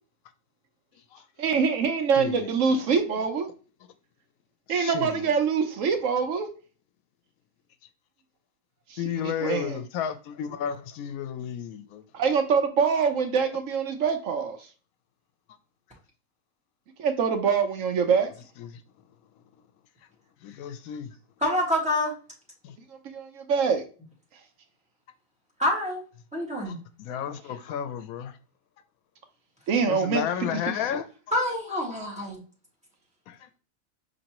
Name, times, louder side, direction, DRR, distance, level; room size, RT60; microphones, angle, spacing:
voice 1, 1.4-3.5 4.7-6.5 8.9-9.8 12.1-14.6 17.0-18.3 23.1-23.8 29.7-30.2 30.5-30.8, right 6 dB, 70° right, 1.0 m, -24 dB
voice 2, 2.2-2.8 4.7-5.3 9.0-12.0 18.6-18.8 20.4-21.1 22.6-22.8 26.6-26.7 27.0-28.3 29.8-31.1 33.3-33.5, left 9 dB, 85° left, 1.0 m, -33 dB
voice 3, 21.4-22.1 25.6-26.0 26.3-26.8 31.3-32.4, left 1 dB, 5° right, 1.5 m, -26 dB
5.3 x 3.0 x 2.9 m
omnidirectional pair, 1.4 m